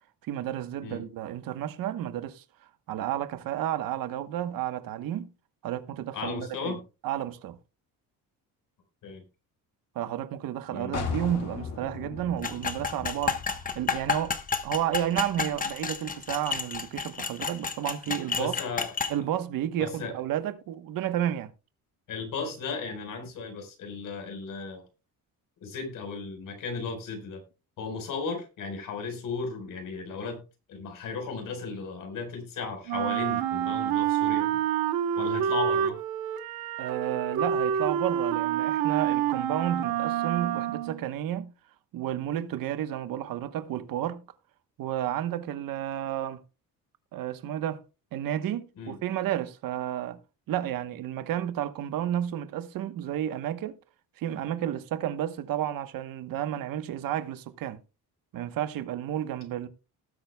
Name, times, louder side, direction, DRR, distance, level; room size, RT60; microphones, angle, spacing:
voice 1, 0.2-2.4 2.9-5.3 5.6-6.8 7.0-7.6 9.9-14.4 14.6-18.5 19.1-21.5 36.8-41.5 41.9-44.2 44.8-46.4 47.1-47.8 48.1-50.2 50.5-53.8 54.2-57.8 58.3-59.7, right 11 dB, 70° right, 1.1 m, -31 dB
voice 2, 6.1-6.8 9.0-9.2 10.7-11.0 18.1-18.9 19.8-20.1 22.1-24.8 25.6-27.4 27.8-30.4 30.7-34.6 35.2-36.0 48.8-49.0, left 4 dB, 60° left, 4.5 m, -35 dB
sound 1, 10.9-16.5, left 5 dB, 45° left, 3.3 m, -39 dB
sound 2, 12.4-19.1, left 5 dB, 25° left, 1.1 m, -31 dB
Wind instrument woodwind instrument, 32.9-41.0, right 10 dB, 90° right, 1.1 m, -28 dB
18.5 x 9.1 x 2.3 m
cardioid pair, 175°, 36 cm